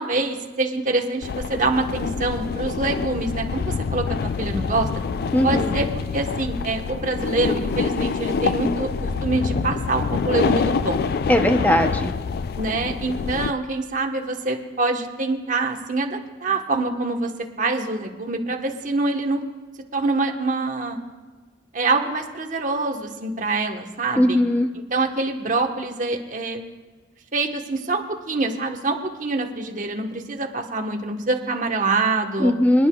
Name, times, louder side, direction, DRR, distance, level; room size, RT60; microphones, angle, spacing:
voice 1, 0.0-4.9 5.4-5.9 6.1-11.0 12.6-17.3 17.6-19.4 19.9-21.0 21.7-24.4 24.9-26.7 27.3-32.5, right 3 dB, 45° right, 3 dB, 1.1 m, -25 dB
sound 1, 1.2-13.5, left 5 dB, 60° left, 0.3 m, -26 dB
voice 2, 5.3-5.7 11.3-12.1 24.2-24.7 32.4-32.9, left 1 dB, 10° left, 6 dB, 0.6 m, -19 dB
26.0 x 10.0 x 2.3 m, 1.3 s
head